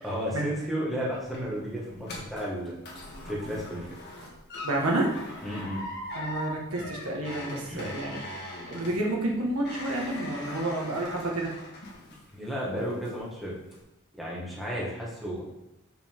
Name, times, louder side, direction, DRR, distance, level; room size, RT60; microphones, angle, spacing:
voice 1, 0.0-2.7 3.3-4.0 5.4-5.8 7.7-7.9 12.3-13.5 14.1-15.4, equal, ahead, -6 dB, 1.7 m, -33 dB
sound 1, 0.9-12.5 12.8-13.3 13.7-13.8, left 1 dB, 50° left, 1.7 m, -41 dB
voice 2, 4.6-5.2 6.1-8.2 8.7-11.5, right 1 dB, 75° right, -1 dB, 1.6 m, -29 dB
8.1 x 5.7 x 3.7 m, 0.95 s
head